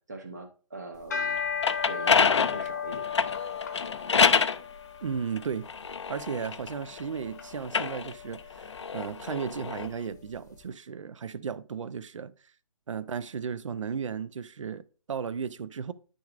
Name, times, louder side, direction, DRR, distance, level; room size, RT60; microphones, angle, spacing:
voice 1, 0.1-1.4 1.9-3.3, right 2 dB, 30° right, 0.8 m, -42 dB
sound 1, 0.9-10.3, left 7 dB, 30° left, 0.9 m, -37 dB
sound 2, 1.4-4.6 5.4-7.0 7.6-9.9, left 6 dB, 50° left, 0.5 m, -26 dB
voice 2, 5.0-5.7 6.1-12.3 12.9-15.9, right 6 dB, 60° right, 0.6 m, -35 dB
10.0 x 6.3 x 2.5 m
hypercardioid pair, 180°, 18 cm